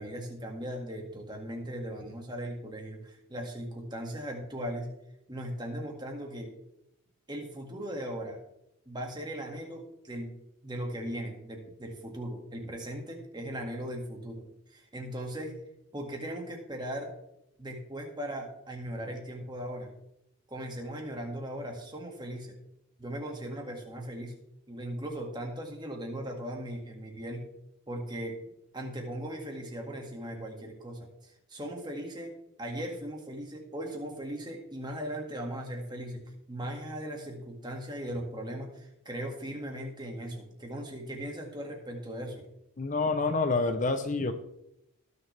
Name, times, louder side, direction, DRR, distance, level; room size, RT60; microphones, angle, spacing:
voice 1, 0.0-4.9 5.3-6.5 7.3-8.4 8.9-10.3 10.6-14.4 14.7-15.6 15.9-17.1 17.6-19.9 20.5-22.6 23.0-24.3 24.7-27.5 27.9-28.4 28.7-32.3 32.6-42.4, right 1 dB, 20° right, 1 dB, 1.9 m, -38 dB
voice 2, 42.8-44.3, left 3 dB, 35° left, 8 dB, 0.6 m, -27 dB
18.5 x 6.7 x 3.3 m, 0.82 s
head